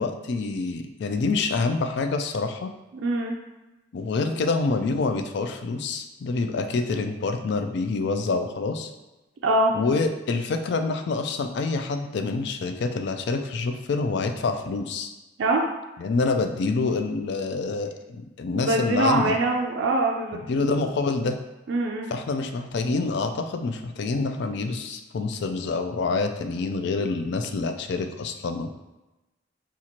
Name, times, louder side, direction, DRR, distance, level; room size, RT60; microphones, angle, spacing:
voice 1, 0.0-2.7 3.9-8.9 9.7-15.1 16.0-19.4 20.3-21.4 22.1-28.7, left 3 dB, 60° left, 6 dB, 0.3 m, -27 dB
voice 2, 2.9-3.4 9.4-9.7 15.4-15.6 18.5-20.6 21.7-22.1, right 2 dB, 65° right, 0 dB, 0.4 m, -23 dB
4.2 x 2.4 x 2.9 m, 1.0 s
head